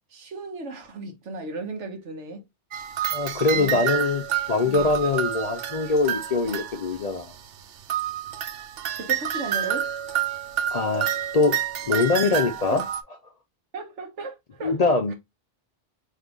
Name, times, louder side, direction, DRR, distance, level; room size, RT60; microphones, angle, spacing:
voice 1, 0.1-2.4 3.5-3.8 4.6-4.9 8.9-9.9 12.7-12.8 13.7-15.1, right 3 dB, 80° right, 1.5 m, -35 dB
sound 1, 2.7-7.4 7.9-13.0, right 10 dB, 65° right, 0.8 m, -29 dB
voice 2, 3.1-4.2 4.5-7.3 10.7-11.1 11.3-11.6 11.9-12.8 14.6-15.1, left 3 dB, 45° left, 0.5 m, -23 dB
5.1 x 3.3 x 2.3 m
omnidirectional pair, 1.2 m